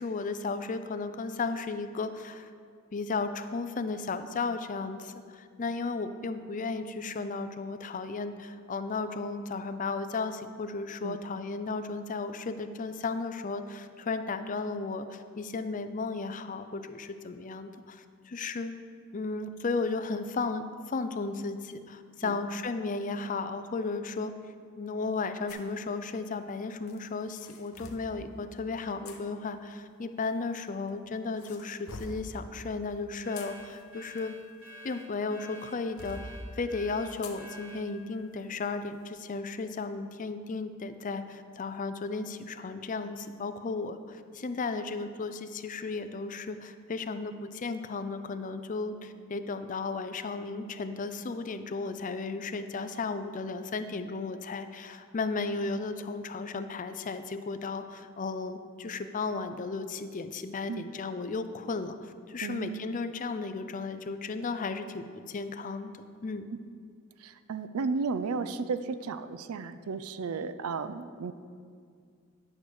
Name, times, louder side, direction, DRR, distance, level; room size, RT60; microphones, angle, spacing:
voice 1, 0.0-2.5 2.9-18.7 19.1-24.3 24.8-34.4 34.8-65.9 66.2-66.5, left 4 dB, 35° left, 9 dB, 0.5 m, -34 dB
sound 1, 25.5-25.7 26.9-28.1 29.0-29.2 30.3-30.9 31.4-32.3 33.1-35.1 35.6-36.3 37.2-37.4 37.9-38.0 38.6-38.8, left 3 dB, 80° left, 0.9 m, -45 dB
sound 2, 33.2-37.9, left 1 dB, 65° right, 1.5 m, -48 dB
voice 2, 62.4-62.9 67.2-71.3, right 4 dB, 85° right, 12 dB, 0.4 m, -34 dB
10.5 x 4.9 x 6.3 m, 2.1 s
head